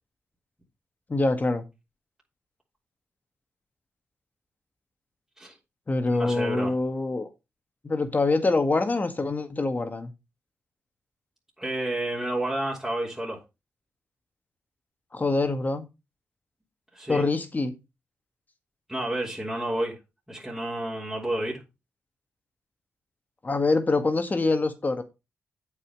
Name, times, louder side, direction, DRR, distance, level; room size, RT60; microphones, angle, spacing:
voice 1, 1.1-1.6 5.9-7.3 7.8-10.1 15.1-15.9 17.1-17.8 23.4-25.0, left 3 dB, 35° left, 1.9 m, -25 dB
voice 2, 6.1-6.7 11.6-13.4 16.9-17.2 18.9-20.0 20.3-21.6, right 1 dB, 5° right, 3.4 m, -30 dB
8.5 x 5.6 x 5.4 m
cardioid pair, 65°, 5 cm